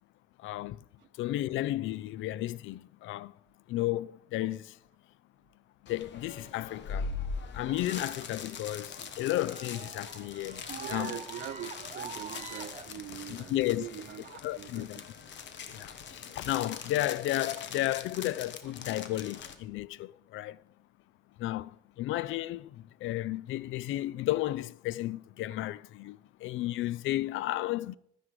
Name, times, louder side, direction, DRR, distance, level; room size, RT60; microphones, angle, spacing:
voice 1, 0.4-0.8 1.2-3.3 3.7-4.8 5.8-7.2 7.5-10.6 10.9-11.2 13.3-13.9 14.4-15.1 15.7-20.6 21.4-27.9, left 15 dB, 80° left, 0.4 m, -33 dB
sound 1, 5.9-19.6, left 6 dB, 65° left, 1.1 m, -42 dB
sound 2, 7.6-12.9, right 6 dB, 35° right, 1.0 m, -45 dB
voice 2, 10.7-15.4 15.6-15.9 18.6-18.7, right 10 dB, 70° right, 0.8 m, -44 dB
12.5 x 9.5 x 4.8 m
cardioid pair, 90°, 20 cm